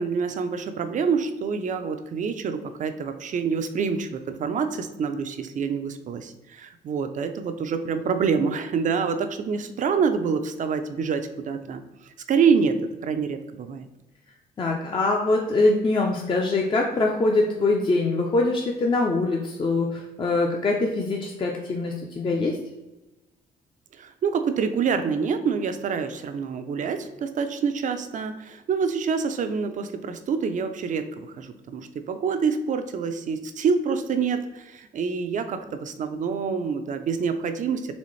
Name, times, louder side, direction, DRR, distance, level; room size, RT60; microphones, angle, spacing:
voice 1, 0.0-12.7 13.0-13.8 24.0-38.0, right 6 dB, 50° right, 8 dB, 0.4 m, -26 dB
voice 2, 14.6-22.6, left 2 dB, 30° left, 0 dB, 0.5 m, -23 dB
4.1 x 3.3 x 3.1 m, 1.0 s
cardioid pair, 100°, 17 cm